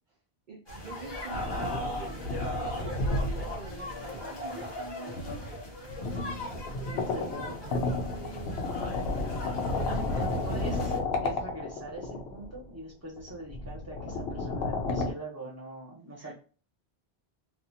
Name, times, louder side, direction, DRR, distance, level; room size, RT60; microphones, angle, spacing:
voice 1, 0.5-5.6 5.9-6.0 6.8-8.9 9.7-10.8 16.2-16.3, right 4 dB, 55° right, -1 dB, 0.7 m, -46 dB
sound 1, 0.7-11.0, left 1 dB, 25° left, 0.9 m, -39 dB
sound 2, 1.3-4.4 5.1-12.6 13.2-15.1, left 2 dB, 75° left, 0.8 m, -32 dB
voice 2, 6.9-7.6 9.9-16.3, right 1 dB, 15° right, -4 dB, 0.9 m, -42 dB
2.6 x 2.4 x 2.7 m, 0.37 s
omnidirectional pair, 1.1 m